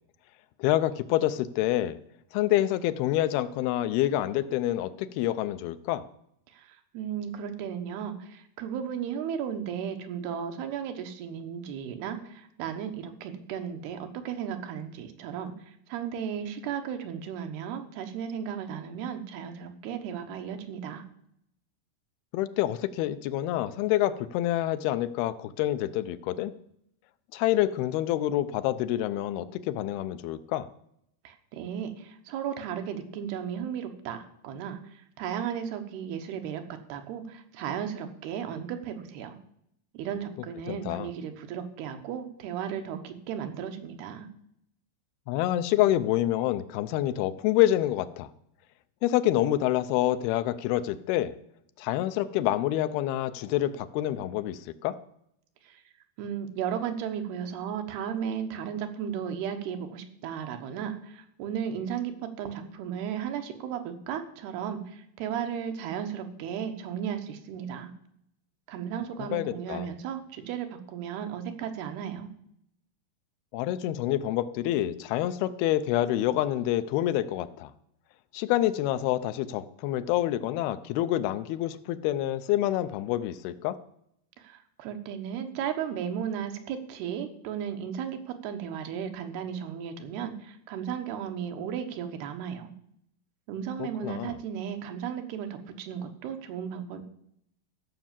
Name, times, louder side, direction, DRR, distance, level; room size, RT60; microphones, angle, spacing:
voice 1, 0.6-2.0 2.3-6.0 22.3-26.5 27.3-30.7 40.7-41.1 45.3-48.3 49.0-51.3 51.8-55.0 69.3-69.9 73.5-77.7 78.3-83.8 93.8-94.4, left 13 dB, 85° left, 13 dB, 2.5 m, -27 dB
voice 2, 6.5-21.0 31.2-36.6 36.9-39.3 39.9-44.3 55.6-55.8 56.2-67.9 68.7-72.3 84.4-92.7 93.5-97.0, right 8 dB, 85° right, 6 dB, 3.1 m, -35 dB
14.5 x 6.0 x 7.4 m, 0.74 s
omnidirectional pair, 4.4 m